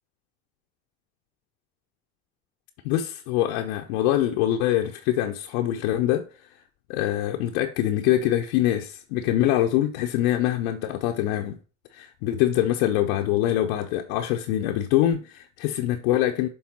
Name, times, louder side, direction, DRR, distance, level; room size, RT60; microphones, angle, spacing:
voice 1, 2.8-6.2 6.9-11.6 11.9-16.5, left 12 dB, 75° left, 0.7 m, -24 dB
7.3 x 3.4 x 4.2 m
hypercardioid pair, 70°, 40 cm